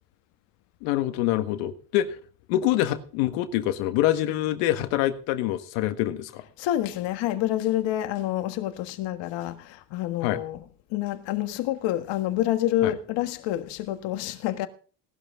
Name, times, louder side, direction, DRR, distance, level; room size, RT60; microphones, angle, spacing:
voice 1, 0.8-2.2 2.5-6.4 10.2-10.4 12.8-12.9, left 13 dB, 90° left, 1.6 m, -25 dB
voice 2, 6.6-10.6 10.9-14.7, left 13 dB, 65° left, 1.6 m, -28 dB
18.0 x 12.5 x 3.7 m
cardioid pair, 135°, 47 cm